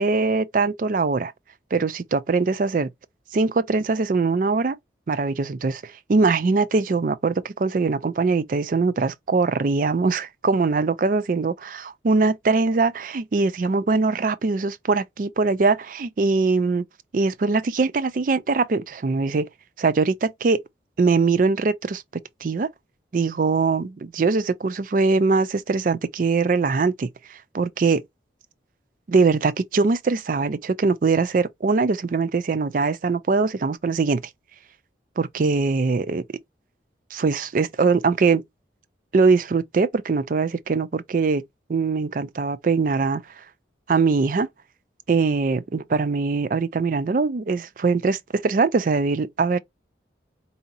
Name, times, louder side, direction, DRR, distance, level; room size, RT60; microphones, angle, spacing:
voice 1, 0.0-1.3 1.7-2.9 3.3-4.8 5.1-16.8 17.1-19.5 19.8-20.6 21.0-22.0 22.4-22.7 23.1-28.0 29.1-34.2 35.2-36.2 37.1-38.4 39.1-41.4 41.7-43.2 43.9-44.5 45.1-49.6, right 4 dB, 45° right, 0.4 m, -22 dB
4.7 x 2.8 x 2.6 m
head